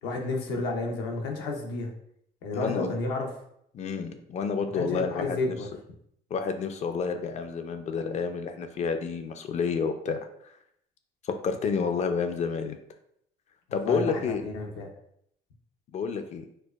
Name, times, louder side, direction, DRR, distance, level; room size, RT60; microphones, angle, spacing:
voice 1, 0.0-1.9 2.4-3.3 4.7-5.7 13.8-14.9, left 2 dB, 90° left, 1 dB, 0.7 m, -31 dB
voice 2, 2.5-3.0 3.7-5.5 6.3-10.2 11.2-12.8 13.7-14.4 15.9-16.4, left 5 dB, 45° left, 8 dB, 0.4 m, -29 dB
4.4 x 2.2 x 2.3 m, 0.71 s
cardioid pair, 110°, 17 cm